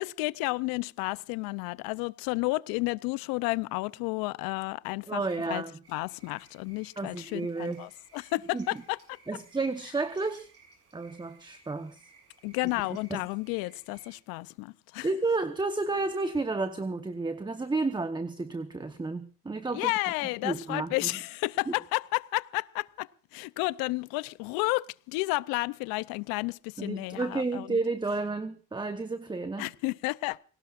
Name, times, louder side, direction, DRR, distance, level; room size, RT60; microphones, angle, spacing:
voice 1, 0.0-5.2 5.5-5.6 5.9-9.0 9.3-9.4 12.4-15.1 19.7-27.8 29.6-30.4, left 22 dB, 75° left, 0.7 m, -32 dB
voice 2, 5.1-5.7 7.0-7.9 8.5-8.7 9.3-10.5 10.9-12.0 13.1-13.2 15.0-19.9 20.4-21.1 21.7-21.8 26.8-29.7, right 3 dB, 15° right, 1.1 m, -31 dB
sound 1, 5.8-14.2, right 4 dB, 40° right, 7.2 m, -60 dB
29.0 x 18.5 x 2.5 m
supercardioid pair, 95°, 36 cm